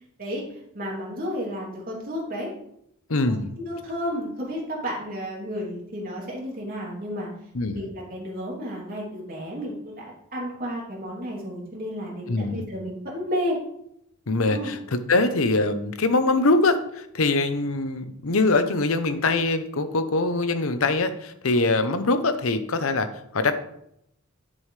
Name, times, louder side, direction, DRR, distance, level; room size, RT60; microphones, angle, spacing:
voice 1, 0.2-2.5 3.3-7.3 7.7-13.6 14.5-14.7, equal, 40° right, -3 dB, 3.1 m, -32 dB
voice 2, 3.1-3.5 7.5-7.9 12.3-12.6 14.3-23.6, left 2 dB, 65° left, 10 dB, 0.8 m, -23 dB
10.0 x 7.3 x 3.3 m, 0.77 s
head